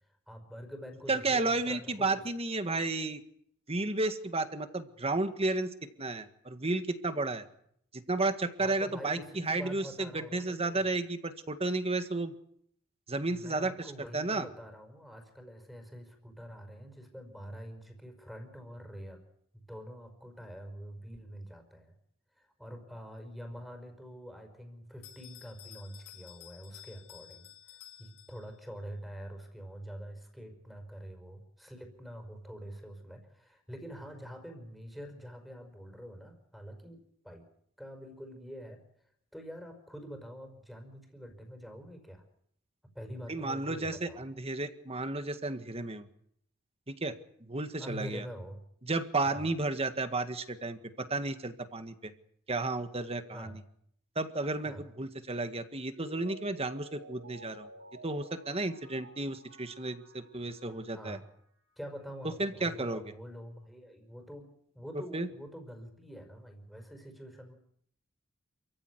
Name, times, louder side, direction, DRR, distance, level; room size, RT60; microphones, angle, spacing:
voice 1, 0.3-2.3 8.6-10.9 13.2-19.2 19.5-21.9 22.4-27.5 28.0-37.5 37.8-38.8 39.3-42.2 43.0-44.2 47.8-48.6 49.2-49.5 53.3-53.6 54.7-54.8 60.9-61.3 61.8-64.5 64.7-67.5, equal, ahead, 5 dB, 5.1 m, -46 dB
voice 2, 1.1-3.2 3.7-5.7 6.0-7.4 7.9-12.3 13.1-14.5 43.3-46.1 46.9-47.1 47.5-48.3 48.8-52.1 52.5-53.5 54.2-57.7 58.0-61.2 62.4-63.0 65.1-65.3, right 2 dB, 30° right, 10 dB, 1.8 m, -33 dB
Bell, 25.0-28.8, left 11 dB, 80° left, 7.4 m, -53 dB
Mallet percussion, 55.9-61.4 61.8-61.9, right 2 dB, 55° right, 4.2 m, -53 dB
28.0 x 15.5 x 9.7 m, 0.70 s
head